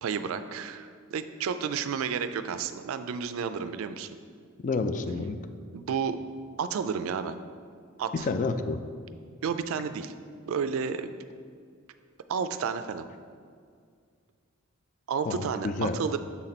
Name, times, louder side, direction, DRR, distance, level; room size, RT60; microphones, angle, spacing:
voice 1, 0.0-4.1 5.7-6.2 6.6-7.4 8.0-8.3 9.4-10.1 10.5-11.1 12.3-13.0 15.1-16.2, right 6 dB, 70° right, 11 dB, 0.3 m, -31 dB
voice 2, 4.6-5.4 8.1-8.8 15.3-16.0, left 3 dB, 35° left, 8 dB, 0.3 m, -29 dB
7.1 x 4.1 x 4.3 m, 2.1 s
head